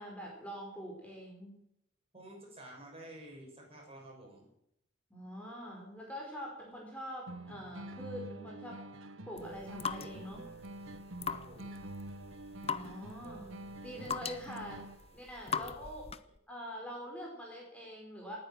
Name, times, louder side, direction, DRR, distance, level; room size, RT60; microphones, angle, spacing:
voice 1, 0.0-1.6 5.1-8.9 9.3-10.4 12.7-14.8 15.1-16.1 16.5-18.4, equal, 5° left, -2 dB, 4.8 m, -45 dB
voice 2, 2.1-4.5 11.3-11.7 15.5-15.7, right 1 dB, 30° right, -1 dB, 6.9 m, -51 dB
sound 1, 7.3-15.2, right 1 dB, 70° right, 1.2 m, -47 dB
sound 2, 9.4-16.4, left 6 dB, 30° left, 0.7 m, -41 dB
19.5 x 9.4 x 7.6 m, 0.73 s
head